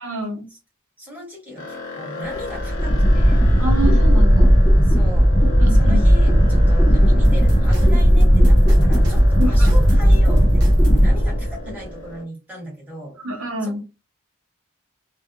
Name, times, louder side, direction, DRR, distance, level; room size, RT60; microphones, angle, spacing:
voice 1, 0.0-0.5 3.6-4.5 5.6-6.0 9.4-9.5 13.2-13.8, equal, 75° right, 1 dB, 0.8 m, -27 dB
voice 2, 1.0-3.5 4.8-5.3 5.7-13.2 13.6-13.8, equal, 10° right, -4 dB, 1.1 m, -37 dB
sound 1, 1.6-12.2, left 3 dB, 55° left, 0.8 m, -36 dB
sound 2, 2.3-11.8, equal, 15° left, 0.5 m, -14 dB
sound 3, 7.2-11.1, right 1 dB, 50° right, 0.9 m, -36 dB
2.4 x 2.2 x 2.7 m, 0.27 s
head